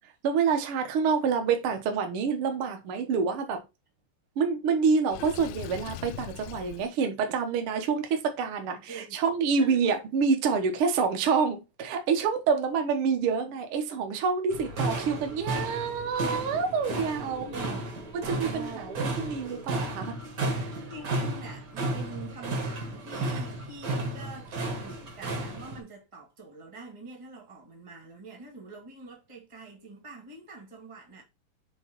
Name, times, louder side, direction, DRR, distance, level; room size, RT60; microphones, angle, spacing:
voice 1, 0.2-3.6 4.4-17.4 18.1-20.2 20.6-20.7 23.3-23.4, right 5 dB, 80° right, 1.2 m, -27 dB
Water / Sink (filling or washing), 5.1-6.9, left 11 dB, 85° left, 2.2 m, -40 dB
voice 2, 8.9-9.8 17.3-17.8 18.5-18.9 20.9-31.2, right 2 dB, 25° right, 0.6 m, -45 dB
sound 1, 14.5-25.8, right 2 dB, 60° right, 1.1 m, -33 dB
sound 2, 14.7-19.7, right 5 dB, 65° left, 1.1 m, -49 dB
6.2 x 3.5 x 4.5 m
omnidirectional pair, 4.1 m